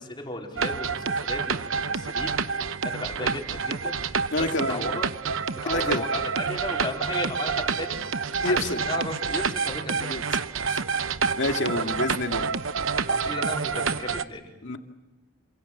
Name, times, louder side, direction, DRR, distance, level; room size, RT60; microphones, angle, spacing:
voice 1, 0.0-5.0 5.5-10.2 13.1-14.5, left 2 dB, 25° left, 0 dB, 4.6 m, -36 dB
sound 1, 0.6-14.2, right 5 dB, 90° right, 0.9 m, -28 dB
voice 2, 4.3-5.0 5.7-6.0 8.3-9.1 9.9-10.2 10.7-10.8 11.3-12.5 14.6-14.8, left 2 dB, 65° left, 4 dB, 2.4 m, -28 dB
28.5 x 28.0 x 7.5 m, 0.99 s
head